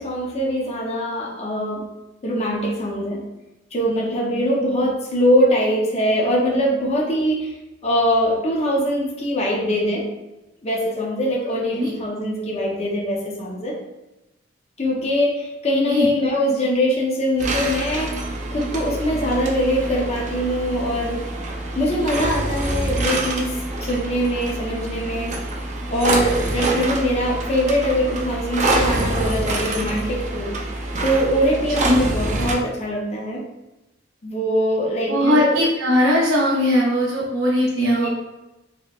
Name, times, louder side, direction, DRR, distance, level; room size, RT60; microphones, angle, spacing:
voice 1, 0.0-1.8 2.2-3.2 3.7-7.5 7.8-10.1 10.6-13.8 14.8-21.2 21.8-23.5 23.8-25.3 25.9-30.5 31.0-33.4 34.2-35.6 37.8-38.1, equal, 35° left, -3 dB, 0.6 m, -22 dB
sound 1, 17.4-32.5, right 2 dB, 40° right, 0.5 m, -26 dB
voice 2, 35.1-38.1, left 1 dB, 85° right, -4 dB, 0.7 m, -19 dB
4.1 x 3.0 x 2.3 m, 1.0 s
head